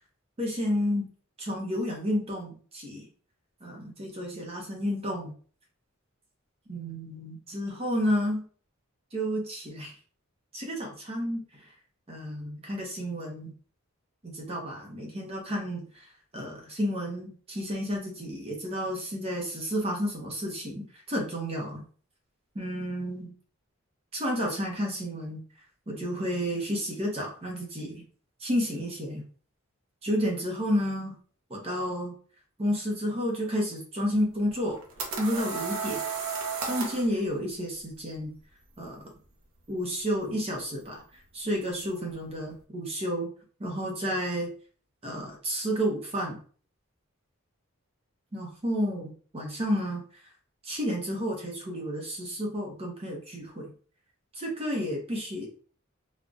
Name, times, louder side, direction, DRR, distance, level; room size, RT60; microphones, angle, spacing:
voice 1, 0.4-1.1 1.4-3.1 3.6-5.3 6.7-8.4 9.1-9.9 10.5-11.7 12.1-13.5 14.2-16.0 16.3-21.8 22.5-23.3 24.1-25.4 25.9-28.0 28.4-29.2 30.0-31.2 31.5-32.1 32.6-34.8 35.2-36.0 36.6-38.3 38.8-39.0 39.7-41.0 41.3-43.3 43.6-44.5 45.0-46.4 48.3-50.0 50.6-53.7 54.3-55.5, equal, 30° right, 0 dB, 0.6 m, -31 dB
sound 1, 34.6-37.1, right 5 dB, 80° right, 0.7 m, -33 dB
3.7 x 2.1 x 2.4 m, 0.43 s
head